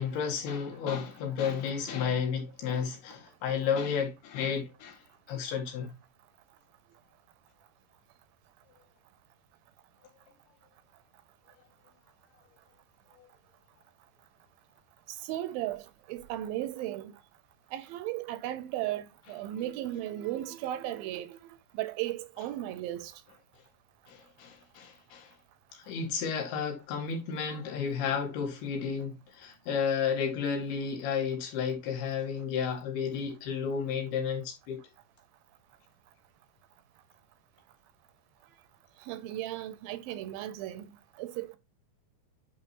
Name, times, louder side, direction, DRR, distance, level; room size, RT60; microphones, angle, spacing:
voice 1, 0.0-5.0 5.3-5.9 13.2-13.3 24.1-25.3 25.7-34.8, left 6 dB, 85° left, 3.6 m, -32 dB
voice 2, 15.1-17.2 17.7-21.4 21.7-23.1 39.0-40.9 41.2-41.6, right 13 dB, 80° right, 2.4 m, -36 dB
9.6 x 4.1 x 2.9 m
omnidirectional pair, 4.4 m